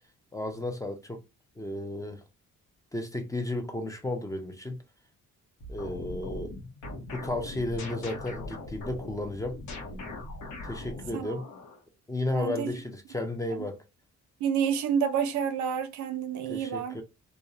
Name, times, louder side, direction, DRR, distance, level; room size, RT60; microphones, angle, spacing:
voice 1, 0.3-1.2 1.6-2.2 2.9-4.8 5.7-6.6 6.9-9.6 10.6-11.5 12.1-13.8 16.5-17.0, left 2 dB, 10° left, 0.4 m, -33 dB
sound 1, 5.6-11.8, left 2 dB, 75° left, 0.7 m, -40 dB
voice 2, 12.3-12.7 13.5-13.7 14.4-17.0, right 7 dB, 70° right, 0.4 m, -29 dB
2.6 x 2.0 x 2.3 m
cardioid pair, 90°, 30 cm